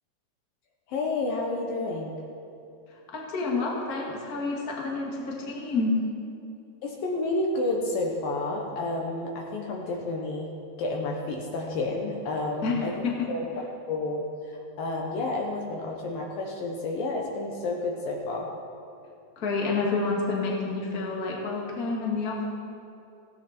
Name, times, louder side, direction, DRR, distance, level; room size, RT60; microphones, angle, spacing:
voice 1, 0.9-2.2 6.8-10.5 10.8-12.9 13.3-18.5, left 2 dB, 65° left, 0 dB, 2.6 m, -30 dB
voice 2, 3.1-6.0 12.6-13.3 19.4-22.5, left 3 dB, 30° left, -2 dB, 1.9 m, -29 dB
17.5 x 16.0 x 4.5 m, 2.7 s
omnidirectional pair, 4.7 m